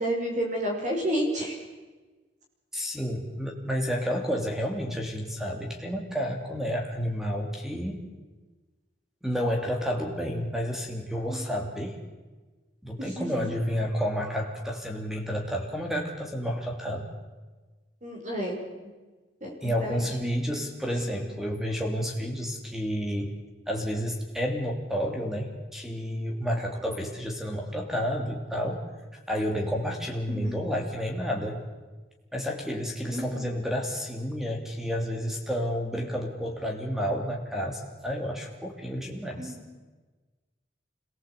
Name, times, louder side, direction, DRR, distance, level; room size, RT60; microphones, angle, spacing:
voice 1, 0.0-1.6 11.3-11.4 13.0-13.4 18.0-18.6 19.4-20.0 30.3-30.6 33.1-33.5 39.4-39.5, right 1 dB, 40° right, 0 dB, 5.5 m, -30 dB
voice 2, 2.7-8.0 9.2-12.0 12.8-17.1 19.6-23.3 23.7-28.8 29.1-31.7 32.3-39.5, equal, ahead, 2 dB, 2.9 m, -30 dB
26.0 x 19.0 x 8.3 m, 1.3 s
head